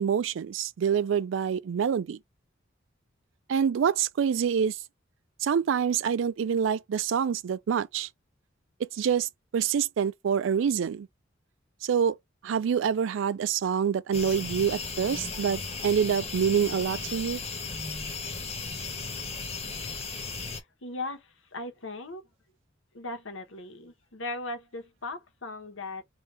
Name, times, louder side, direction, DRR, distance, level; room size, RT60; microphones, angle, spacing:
voice 1, 0.0-2.2 3.5-4.8 5.4-8.1 8.8-11.1 11.8-12.2 12.4-17.4, right 7 dB, 70° right, 0.3 m, -26 dB
sound 1, 14.1-20.6, left 4 dB, 35° left, 0.9 m, -36 dB
voice 2, 20.4-22.2 22.9-26.0, left 2 dB, 85° left, 1.2 m, -38 dB
3.4 x 2.7 x 4.3 m
head